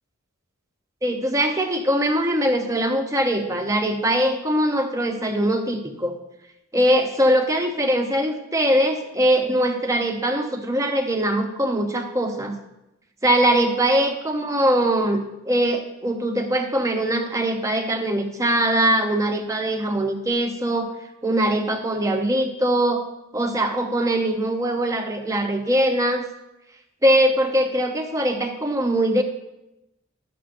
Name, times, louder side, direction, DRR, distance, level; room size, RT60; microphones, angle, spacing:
voice 1, 1.0-6.1 6.7-12.5 13.2-20.9 21.2-23.0 23.3-26.2 27.0-29.2, right 1 dB, 15° right, 4 dB, 0.7 m, -22 dB
12.5 x 6.7 x 2.5 m, 0.91 s
head